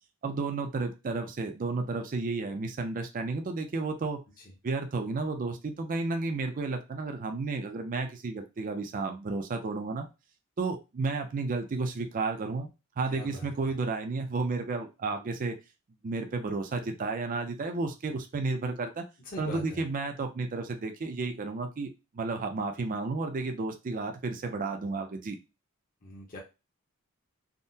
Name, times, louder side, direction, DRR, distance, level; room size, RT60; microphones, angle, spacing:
voice 1, 0.2-4.2 4.6-10.0 10.6-12.7 13.0-15.6 16.0-19.0 19.4-21.9 22.1-25.4, right 3 dB, 40° right, 5 dB, 0.4 m, -32 dB
voice 2, 13.1-13.5 19.2-19.8 26.0-26.4, left 1 dB, 40° left, -3 dB, 0.8 m, -42 dB
3.5 x 2.0 x 2.7 m, 0.27 s
head